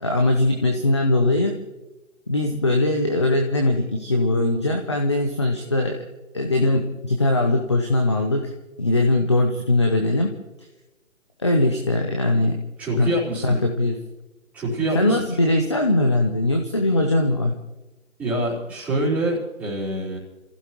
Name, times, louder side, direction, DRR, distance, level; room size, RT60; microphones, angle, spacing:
voice 1, 0.0-1.6 2.3-6.0 6.3-8.5 8.8-10.3 11.4-12.6 13.0-13.1 13.4-14.0 14.9-17.5, left 2 dB, 20° left, 3 dB, 0.7 m, -21 dB
voice 2, 12.8-13.6 14.5-15.2 18.2-20.2, right 1 dB, 5° right, -11 dB, 4.2 m, -25 dB
29.5 x 15.5 x 3.1 m, 1.1 s
figure-of-eight pair, 160°, 41 cm